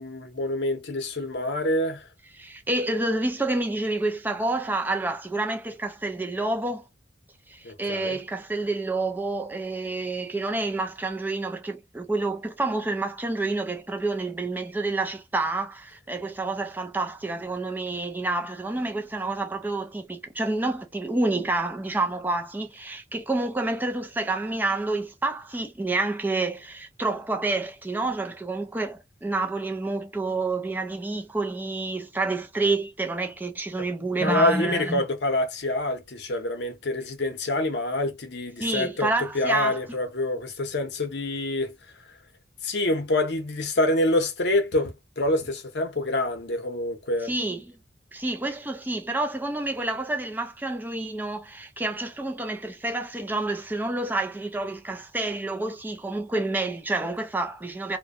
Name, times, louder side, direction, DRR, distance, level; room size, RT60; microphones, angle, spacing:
voice 1, 0.0-2.0 7.6-8.2 34.2-39.1 39.3-41.7 42.6-47.3, left 1 dB, 60° left, 0.7 m, -26 dB
voice 2, 2.3-6.8 7.5-35.1 38.6-40.0 47.2-47.7 48.1-58.0, right 2 dB, 10° right, 0.4 m, -28 dB
2.6 x 2.2 x 2.3 m
head